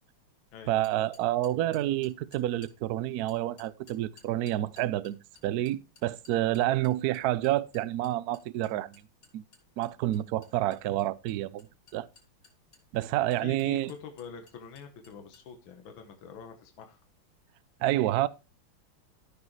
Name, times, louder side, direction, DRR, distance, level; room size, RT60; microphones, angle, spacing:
voice 1, 0.7-5.2 5.4-9.0 9.3-9.4 9.8-11.7 11.9-12.1 12.9-13.9 17.8-18.3, right 14 dB, 85° right, 0.8 m, -28 dB
sound 1, 0.8-2.7 3.3-15.5, left 4 dB, 40° left, 3.3 m, -58 dB
voice 2, 13.4-17.0, left 7 dB, 70° left, 1.9 m, -45 dB
15.0 x 6.2 x 3.2 m
omnidirectional pair, 2.3 m